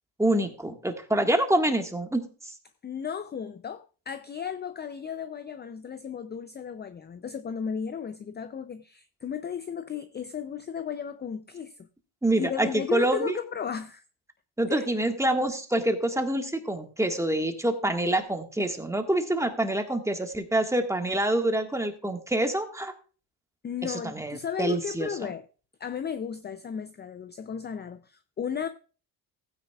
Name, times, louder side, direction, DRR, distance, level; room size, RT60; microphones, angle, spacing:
voice 1, 0.2-2.5 12.2-13.4 14.6-22.9 23.8-25.3, right 1 dB, 5° right, 1.6 m, -26 dB
voice 2, 2.8-11.9 12.4-14.0 14.7-14.9 23.6-25.4 25.8-28.7, left 7 dB, 25° left, 0.5 m, -35 dB
15.5 x 9.4 x 2.4 m
supercardioid pair, 85°, 42 cm